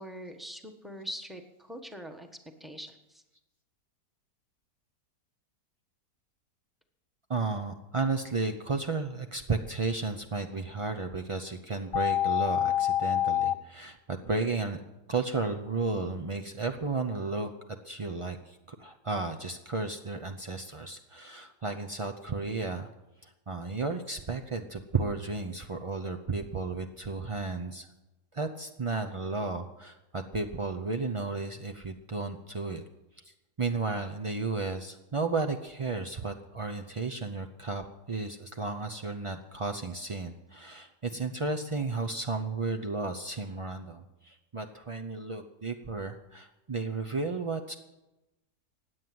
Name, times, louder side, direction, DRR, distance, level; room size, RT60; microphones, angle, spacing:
voice 1, 0.0-2.3 2.6-3.2, equal, ahead, 5 dB, 1.1 m, -43 dB
voice 2, 7.3-14.8 15.1-17.5 17.8-22.9 23.2-27.9 28.3-32.8 33.6-47.7, right 3 dB, 55° right, 5 dB, 0.3 m, -33 dB
sound 1, 11.9-13.5, left 11 dB, 80° left, 1.3 m, -26 dB
16.5 x 9.5 x 7.7 m, 0.99 s
omnidirectional pair, 1.8 m